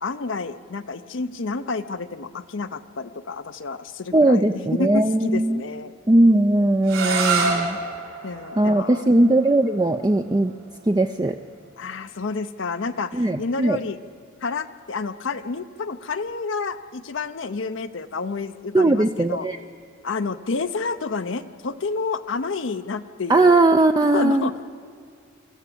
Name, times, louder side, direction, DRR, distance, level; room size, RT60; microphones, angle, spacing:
voice 1, 0.0-5.9 8.2-9.1 11.8-14.0 14.4-19.5 20.0-23.6 24.1-24.6, left 4 dB, 55° left, 9 dB, 0.6 m, -29 dB
voice 2, 4.1-5.6 6.1-7.8 8.6-10.5 10.9-11.4 13.1-13.8 18.7-19.6 23.3-24.6, right 2 dB, 20° right, 7 dB, 0.4 m, -19 dB
sound 1, 6.8-12.6, right 4 dB, 75° right, 4.8 m, -29 dB
25.0 x 14.0 x 8.4 m, 2.2 s
head